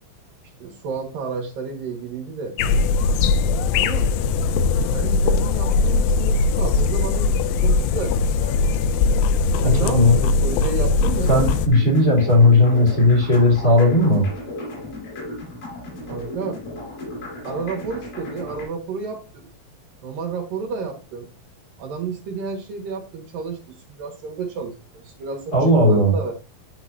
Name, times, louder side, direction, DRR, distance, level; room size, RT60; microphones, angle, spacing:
voice 1, 0.6-2.5 3.7-4.1 4.9-8.7 9.5-11.3 16.0-16.6 17.4-19.5 20.0-21.3 21.8-23.6 23.9-25.6 25.9-26.3, right 5 dB, 70° right, 0 dB, 3.2 m, -31 dB
sound 1, 2.6-11.7, left 4 dB, 90° left, 2.4 m, -20 dB
voice 2, 9.6-10.2 11.3-14.3 25.5-26.1, left 2 dB, 30° left, -4 dB, 2.1 m, -16 dB
sound 2, 11.0-18.7, left 1 dB, 70° left, 5.2 m, -35 dB
12.0 x 4.0 x 2.7 m, 0.34 s
omnidirectional pair, 4.2 m